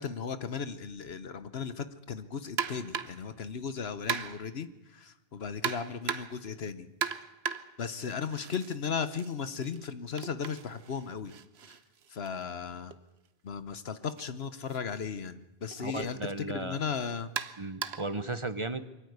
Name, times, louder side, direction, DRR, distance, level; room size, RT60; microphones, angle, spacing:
voice 1, 0.0-6.9 7.8-11.3 11.7-11.8 12.1-12.9 13.4-16.2 16.5-17.3, left 6 dB, 80° left, 12 dB, 1.3 m, -36 dB
sound 1, 2.6-3.3 4.1-4.6 5.6-6.5 7.0-8.8 9.1-13.0 14.0-14.2 14.7-14.8 15.7-15.8 17.4-18.2, right 7 dB, 90° right, 1.2 m, -37 dB
voice 2, 15.8-16.8 17.6-18.9, right 2 dB, 30° right, 12 dB, 0.9 m, -35 dB
23.5 x 15.0 x 9.5 m, 0.99 s
omnidirectional pair, 1.0 m